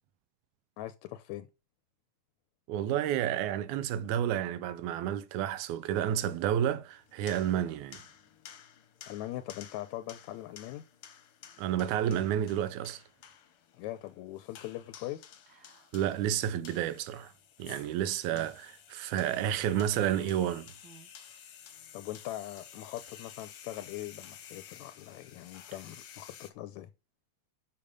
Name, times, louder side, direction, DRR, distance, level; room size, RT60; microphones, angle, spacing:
voice 1, 0.8-1.5 9.1-10.8 13.7-15.3 18.3-18.5 21.9-26.9, left 14 dB, 80° left, 1.9 m, -41 dB
voice 2, 2.7-8.0 11.6-13.0 15.9-17.3 17.6-20.7, right 10 dB, 85° right, 2.1 m, -30 dB
sound 1, 6.9-26.5, left 9 dB, 65° left, 1.5 m, -53 dB
Whispering, 15.5-16.2 16.5-16.6 17.7-18.6 19.2-19.3 20.1-21.3, right 10 dB, 35° right, 2.5 m, -52 dB
6.8 x 5.4 x 5.1 m
omnidirectional pair, 3.4 m